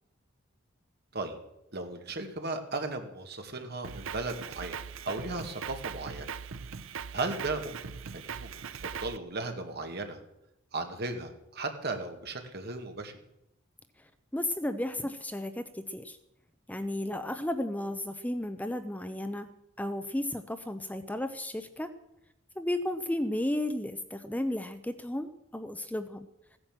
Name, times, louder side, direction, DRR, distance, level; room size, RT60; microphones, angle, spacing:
voice 1, 1.7-4.8 5.0-6.3 7.1-7.8 8.1-10.2 10.7-13.2, right 3 dB, 55° right, 5 dB, 2.1 m, -36 dB
Drum kit, 3.8-9.2, right 6 dB, 85° right, 0.6 m, -40 dB
voice 2, 14.3-16.2 16.7-19.5 19.8-21.9 22.6-26.3, left 1 dB, 10° left, 9 dB, 0.6 m, -33 dB
16.0 x 9.9 x 7.4 m, 0.85 s
head